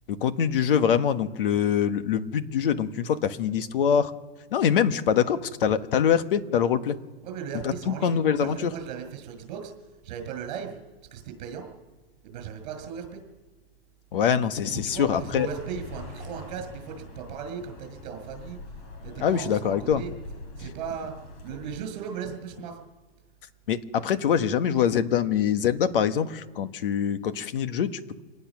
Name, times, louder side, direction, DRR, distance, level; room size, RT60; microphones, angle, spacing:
voice 1, 0.1-4.1 4.5-7.0 7.6-8.7 14.1-15.5 19.2-20.0 23.7-28.2, left 8 dB, 55° left, 10 dB, 1.5 m, -24 dB
voice 2, 7.2-9.7 10.0-10.8 11.1-11.7 12.2-13.2 14.7-18.6 19.0-20.1 20.6-21.1 21.4-22.8, right 7 dB, 40° right, 6 dB, 6.0 m, -37 dB
Accelerating revving vroom, 14.9-21.8, left 2 dB, 35° left, 3.9 m, -43 dB
26.0 x 19.5 x 6.2 m, 1.3 s
hypercardioid pair, 160°, 32 cm